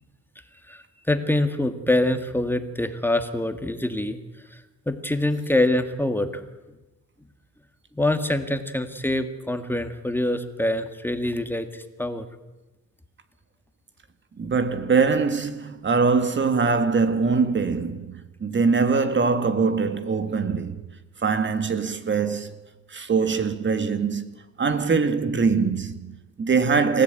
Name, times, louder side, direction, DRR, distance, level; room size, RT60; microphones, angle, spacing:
voice 1, 0.7-4.2 4.5-4.6 4.9-6.4 7.9-12.3, left 1 dB, 5° left, 2.1 m, -25 dB
voice 2, 14.4-20.8 21.2-22.5 22.9-24.3 24.6-27.0, right 5 dB, 40° right, 1.9 m, -23 dB
27.5 x 15.5 x 9.1 m
cardioid pair, 90°, 30 cm